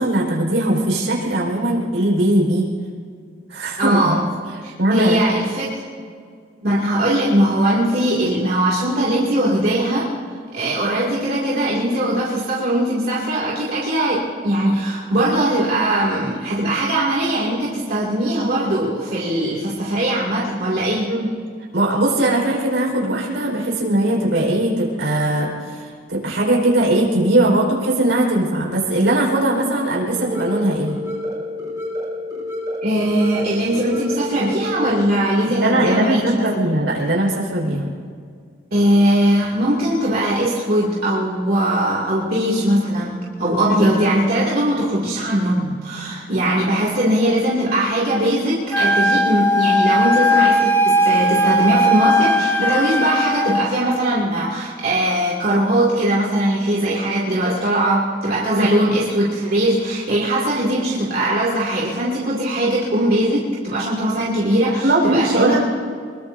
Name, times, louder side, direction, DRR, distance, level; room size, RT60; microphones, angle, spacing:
voice 1, 0.0-2.7 3.5-4.2 4.8-5.2 21.0-21.3 21.7-31.0 35.5-37.9 43.7-43.8 58.5-58.7 64.8-65.6, right 1 dB, 70° right, -3 dB, 4.6 m, -19 dB
voice 2, 3.8-4.3 4.6-5.7 6.6-10.1 10.5-21.1 32.8-36.4 38.7-65.6, right 1 dB, 50° right, -6 dB, 2.4 m, -20 dB
sound 1, 30.1-35.1, left 1 dB, 20° right, 4.5 m, -29 dB
Wind instrument woodwind instrument, 48.7-53.7, equal, 10° left, 1.0 m, -17 dB
24.5 x 22.0 x 2.7 m, 2.1 s
head